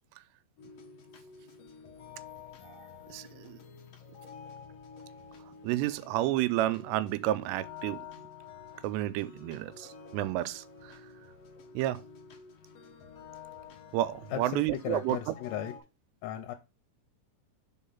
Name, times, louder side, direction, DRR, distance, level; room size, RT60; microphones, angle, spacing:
sound 1, 0.6-15.8, left 6 dB, 70° left, 1.6 m, -50 dB
voice 1, 3.1-3.6 5.6-8.1 8.8-11.0 11.8-12.0 13.9-15.2, right 15 dB, 90° right, 2.7 m, -31 dB
voice 2, 14.3-15.7 16.2-16.6, left 11 dB, 85° left, 2.8 m, -36 dB
5.4 x 4.6 x 5.6 m
omnidirectional pair, 4.8 m